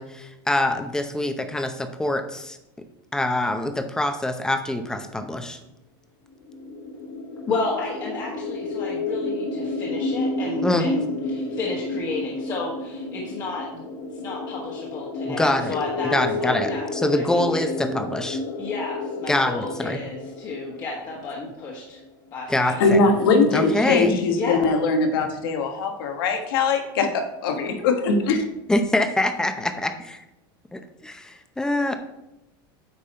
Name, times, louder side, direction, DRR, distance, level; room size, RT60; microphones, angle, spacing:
voice 1, 0.0-2.6 3.1-5.6 10.6-10.9 15.3-15.8 16.1-18.4 19.3-20.0 22.5-23.0 23.5-24.2 28.7-30.2 30.7-31.9, left 1 dB, 5° left, 8 dB, 0.6 m, -24 dB
sound 1, 6.4-22.1, left 2 dB, 55° left, 1.6 m, -31 dB
voice 2, 7.5-13.8 14.2-16.8 17.1-17.7 18.6-22.0 22.3-22.9 24.3-24.7, left 3 dB, 30° left, -3 dB, 1.3 m, -32 dB
voice 3, 22.8-28.4, left 4 dB, 80° left, 5 dB, 1.4 m, -21 dB
8.7 x 5.3 x 4.3 m, 0.93 s
supercardioid pair, 150°, 12 cm